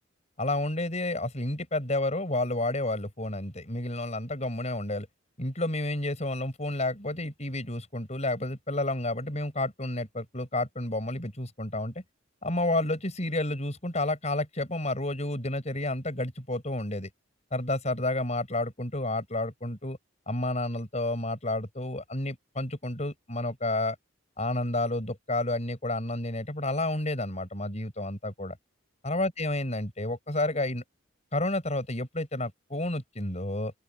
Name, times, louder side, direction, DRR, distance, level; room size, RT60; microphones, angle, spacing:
voice 1, 0.4-5.1 5.4-11.9 12.4-17.1 17.5-20.0 20.3-23.9 24.4-28.6 29.0-30.8 31.3-33.7, left 2 dB, 35° left, 6.7 m, -30 dB
open air
head